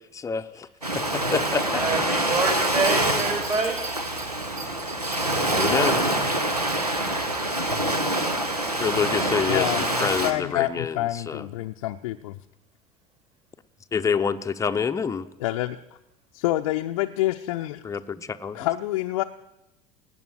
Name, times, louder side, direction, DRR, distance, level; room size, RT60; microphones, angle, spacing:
voice 1, 0.1-0.7 0.9-1.8 5.5-6.4 8.8-11.5 13.9-15.3 17.8-18.6, left 6 dB, 15° left, 9 dB, 0.7 m, -27 dB
Ocean, 0.8-10.3, right 1 dB, 90° right, 1.1 m, -25 dB
voice 2, 1.7-4.0 4.8-4.9, right 3 dB, 35° right, 1 dB, 6.1 m, -27 dB
Bell, 2.7-6.9 7.4-7.5, right 5 dB, 55° right, 1.9 m, -41 dB
voice 3, 9.5-12.4 15.4-15.8 16.3-17.8 18.5-19.2, left 16 dB, 60° left, 5 dB, 0.6 m, -27 dB
18.0 x 8.5 x 7.8 m, 0.95 s
figure-of-eight pair, 70°, 19 cm